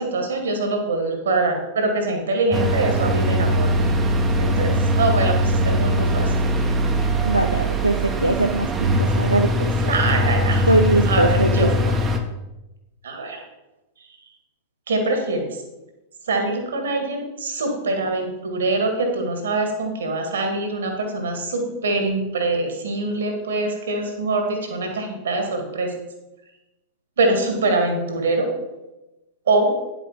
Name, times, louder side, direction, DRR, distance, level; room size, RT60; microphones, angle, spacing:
voice 1, 0.0-3.7 4.4-6.3 9.8-10.7 11.0-11.7 13.0-13.4 14.9-15.6 16.3-25.9 27.2-28.5 29.5-29.8, right 2 dB, 65° right, 4 dB, 2.3 m, -23 dB
sound 1, 2.5-12.2, equal, 20° right, 1.3 m, -21 dB
voice 2, 7.2-8.7 9.0-9.7 10.7-11.7, right 1 dB, 85° right, 5 dB, 0.5 m, -21 dB
10.0 x 7.5 x 5.1 m, 0.99 s
figure-of-eight pair, 90°, 0 cm